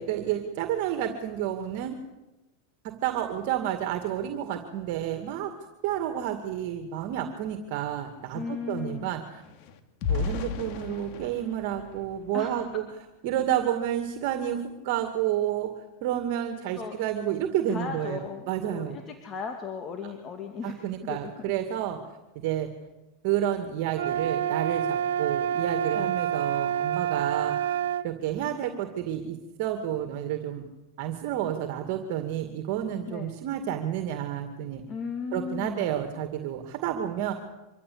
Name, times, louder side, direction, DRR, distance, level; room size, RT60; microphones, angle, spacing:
voice 1, 0.0-2.0 3.0-5.5 5.8-9.4 10.1-12.8 13.2-15.7 16.0-19.0 20.6-22.0 22.4-22.7 23.2-27.8 28.0-30.6 31.0-34.8 35.3-37.3, right 11 dB, 60° right, 7 dB, 2.2 m, -30 dB
sound 1, 7.0-7.1 7.4-12.9 13.4-13.6 14.0-14.2, left 6 dB, 55° left, 2.4 m, -36 dB
voice 2, 8.3-9.1 12.3-12.6 16.7-17.0 17.7-21.3 25.9-26.1 33.1-33.3 34.9-35.9, left 6 dB, 30° left, 4 dB, 2.6 m, -36 dB
sound 2, 23.9-28.1, right 9 dB, 85° right, 1.1 m, -27 dB
25.0 x 14.5 x 8.7 m, 1.1 s
supercardioid pair, 120°, 0 cm